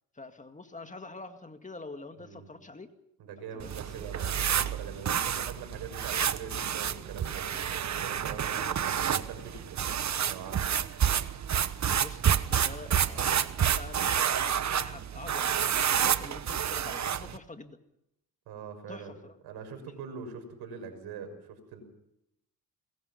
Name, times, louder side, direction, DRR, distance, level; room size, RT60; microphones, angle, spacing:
voice 1, 0.1-2.9 3.5-4.1 8.5-8.8 12.0-14.2 14.7-17.8 18.9-19.3, left 3 dB, 20° left, 7 dB, 2.1 m, -46 dB
voice 2, 2.2-2.5 3.2-9.8 10.3-10.7 18.5-19.1 19.4-21.8, right 6 dB, 85° right, 7 dB, 6.2 m, -43 dB
sound 1, 3.6-17.4, right 9 dB, 45° right, 1.2 m, -29 dB
23.0 x 21.5 x 5.7 m, 0.81 s
cardioid pair, 90°, 38 cm